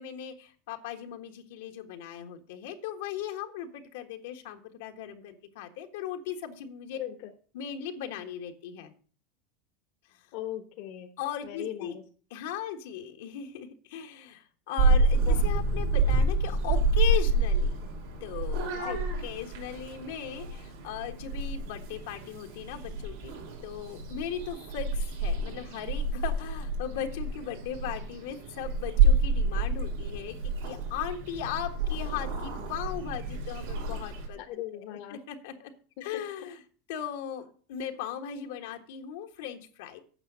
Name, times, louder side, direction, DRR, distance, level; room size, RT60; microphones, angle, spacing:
voice 1, 0.0-7.0 7.5-8.9 10.1-10.2 11.2-12.0 12.3-17.8 18.2-23.4 23.6-34.8 35.1-35.7 36.0-36.6 36.9-40.0, left 9 dB, 80° left, 4 dB, 1.5 m, -38 dB
voice 2, 6.9-7.3 10.3-11.1 11.4-12.0 15.3-15.4 18.8-19.0 34.5-35.2 36.0-36.1, left 13 dB, 60° left, 6 dB, 1.2 m, -38 dB
Purr / Meow, 14.8-34.3, right 2 dB, 85° right, 4.3 m, -28 dB
8.8 x 5.9 x 7.5 m, 0.42 s
supercardioid pair, 140°, 0 cm